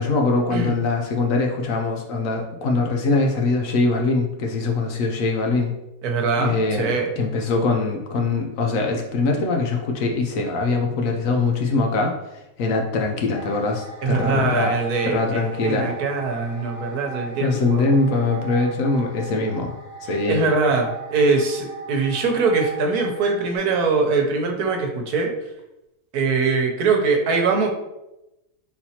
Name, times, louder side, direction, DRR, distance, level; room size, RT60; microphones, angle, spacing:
voice 1, 0.0-5.7 6.4-12.2 12.6-14.7 15.0-15.9 17.4-19.7 20.0-20.5, left 3 dB, 65° left, 2 dB, 0.9 m, -22 dB
voice 2, 6.0-7.1 14.0-17.9 20.3-25.3 26.1-27.7, right 4 dB, 75° right, 3 dB, 1.3 m, -22 dB
sound 1, 13.3-23.6, right 3 dB, 85° left, 1.8 m, -38 dB
4.2 x 4.0 x 2.8 m, 0.93 s
omnidirectional pair, 1.7 m